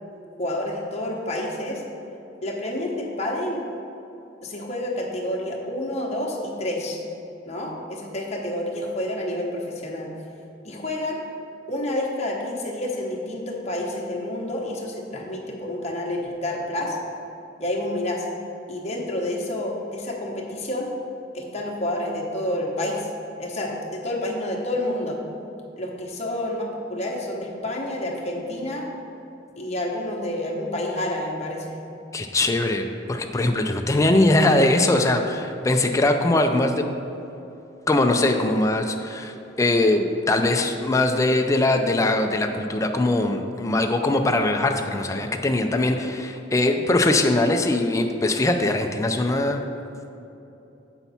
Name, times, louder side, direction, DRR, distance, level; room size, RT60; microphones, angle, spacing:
voice 1, 0.4-1.8 2.4-3.6 4.4-7.0 7.4-10.1 10.6-11.2 11.7-17.0 17.6-18.3 18.7-20.9 21.3-23.1 23.4-25.2 25.8-28.9 29.6-31.8, left 1 dB, 35° left, -1 dB, 1.1 m, -29 dB
voice 2, 32.1-36.9 37.9-49.6, left 2 dB, 15° left, 4 dB, 0.4 m, -21 dB
8.0 x 5.7 x 4.2 m, 2.9 s
head